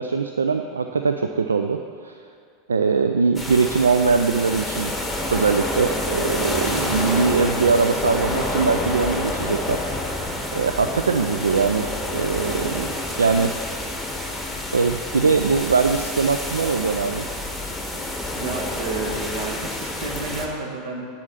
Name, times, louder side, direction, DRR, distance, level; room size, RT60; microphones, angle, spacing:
voice 1, 0.0-2.1 2.7-4.9 5.3-9.8 10.5-12.9 13.2-13.5 14.7-17.3, right 4 dB, 80° right, 6 dB, 0.3 m, -21 dB
sound 1, 3.4-20.5, left 1 dB, ahead, 1.3 m, -28 dB
voice 2, 18.4-21.0, right 3 dB, 60° right, 0 dB, 1.6 m, -30 dB
10.0 x 4.3 x 6.5 m, 2.3 s
figure-of-eight pair, 85°, 0 cm